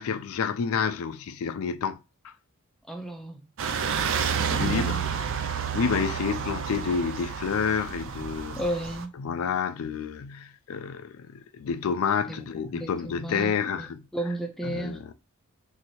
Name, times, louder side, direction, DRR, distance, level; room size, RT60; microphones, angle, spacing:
voice 1, 0.0-2.0 2.2-2.3 4.6-5.0 5.4-8.6 9.2-14.0 14.6-15.1, left 6 dB, 70° left, 0.4 m, -29 dB
voice 2, 2.9-3.4 4.3-5.0 8.6-9.1 12.3-13.5 13.8-13.9 14.1-15.0, right 1 dB, ahead, 0.4 m, -33 dB
sound 1, 3.6-9.0, right 7 dB, 60° right, 0.4 m, -30 dB
3.2 x 2.7 x 2.9 m
head